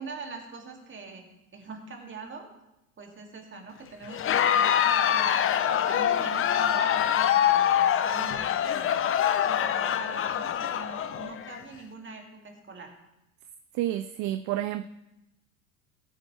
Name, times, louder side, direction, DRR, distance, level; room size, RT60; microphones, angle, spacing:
voice 1, 0.0-2.5 3.0-5.4 5.6-9.0 9.5-12.9, right 4 dB, 25° right, 2 dB, 2.5 m, -43 dB
Crowd, 4.1-11.6, left 9 dB, 30° left, 0.7 m, -25 dB
voice 2, 13.7-14.9, right 13 dB, 45° right, 12 dB, 0.5 m, -29 dB
16.0 x 8.8 x 3.3 m, 0.92 s
hypercardioid pair, 85°, 43 cm